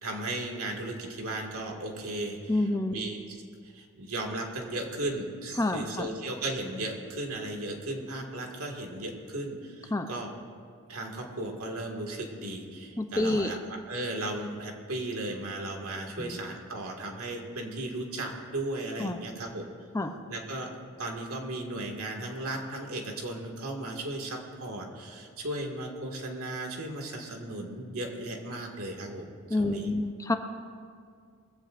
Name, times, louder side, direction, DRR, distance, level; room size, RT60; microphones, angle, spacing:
voice 1, 0.0-10.3 10.9-19.7 20.3-20.7 21.0-29.9, right 1 dB, 75° right, 1 dB, 2.1 m, -36 dB
voice 2, 2.5-3.0 5.6-6.1 9.9-10.1 13.0-13.5 16.2-16.4 19.0-19.2 19.9-20.1 29.5-30.4, left 2 dB, 15° left, 6 dB, 0.6 m, -28 dB
21.0 x 16.0 x 2.6 m, 2.2 s
head